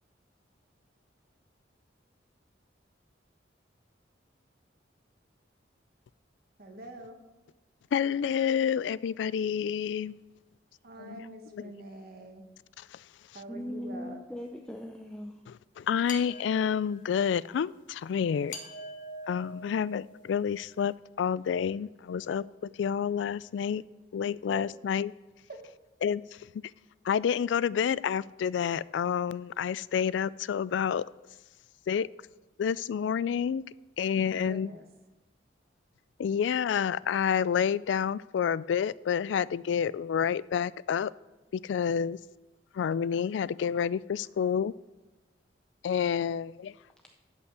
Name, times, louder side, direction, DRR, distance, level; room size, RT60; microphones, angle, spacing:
voice 1, 6.6-7.2 10.8-12.4 13.3-14.2 24.5-24.7 25.5-25.7 34.1-34.8, right 2 dB, 55° right, 1.4 m, -45 dB
voice 2, 7.9-10.2 11.0-11.2 12.9-13.0 15.5-18.6 19.3-23.8 24.1-25.1 26.0-26.4 27.0-31.0 31.9-32.1 32.6-33.6 34.0-34.7 36.2-41.1 41.5-42.2 42.7-44.7 45.8-46.7, left 7 dB, 75° left, 0.3 m, -29 dB
voice 3, 13.5-15.4, equal, 5° left, 0.5 m, -39 dB
sound 1, 16.1-17.2 18.5-20.4, left 1 dB, 45° left, 1.2 m, -43 dB
11.5 x 5.6 x 6.8 m
head